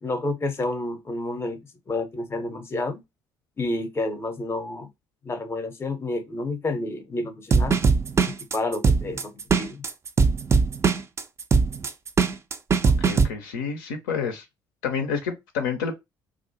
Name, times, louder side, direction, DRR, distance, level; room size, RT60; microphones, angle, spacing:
voice 1, 0.0-1.6 1.9-3.0 3.6-4.9 5.2-7.8 8.3-9.8, left 2 dB, 25° left, 0.6 m, -30 dB
sound 1, 7.5-13.3, right 5 dB, 25° right, 0.3 m, -20 dB
voice 2, 12.8-14.5 14.8-16.0, left 6 dB, 70° left, 0.4 m, -29 dB
2.4 x 2.1 x 2.7 m
figure-of-eight pair, 50°, 11 cm